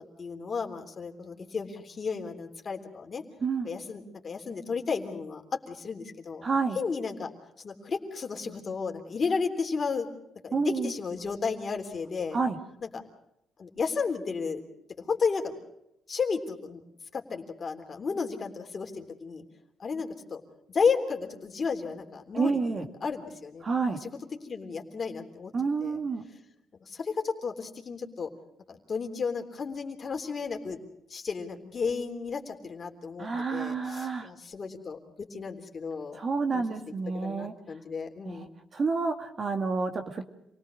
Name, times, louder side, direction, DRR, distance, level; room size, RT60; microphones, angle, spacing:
voice 1, 0.2-3.2 3.6-6.5 6.7-7.3 7.6-10.1 10.4-12.4 12.8-13.0 13.6-14.6 15.0-15.5 16.1-16.8 17.1-19.4 19.8-20.4 20.7-24.1 24.4-25.5 25.8-26.0 26.9-28.3 28.7-30.8 31.1-36.2 36.5-36.8 37.2-38.5, left 5 dB, 40° left, 4 dB, 3.5 m, -33 dB
voice 2, 3.4-3.7 6.4-6.8 10.5-10.9 12.3-12.6 22.3-22.8 23.6-24.0 25.5-26.3 33.2-34.3 36.2-37.5 38.3-38.5 38.7-40.2, right 4 dB, 45° right, 6 dB, 2.2 m, -29 dB
27.5 x 18.5 x 6.4 m, 0.82 s
cardioid pair, 90°, 0 cm